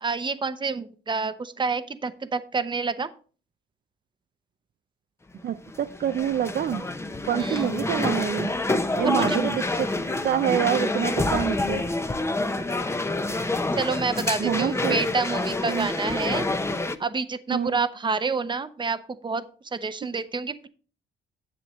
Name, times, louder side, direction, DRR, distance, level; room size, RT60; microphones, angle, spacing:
voice 1, 0.0-3.1 7.4-7.7 9.0-9.4 13.8-16.5 17.0-19.4 19.7-20.7, right 4 dB, 25° right, 0.8 m, -28 dB
sound 1, 5.4-17.0, left 2 dB, 15° left, 0.7 m, -27 dB
voice 2, 5.4-6.8 7.2-8.5 9.0-9.9 10.2-11.8 14.4-15.0 15.7-15.9 17.5-17.8, right 10 dB, 50° right, 0.5 m, -26 dB
9.9 x 7.6 x 3.2 m
cardioid pair, 90°, 20 cm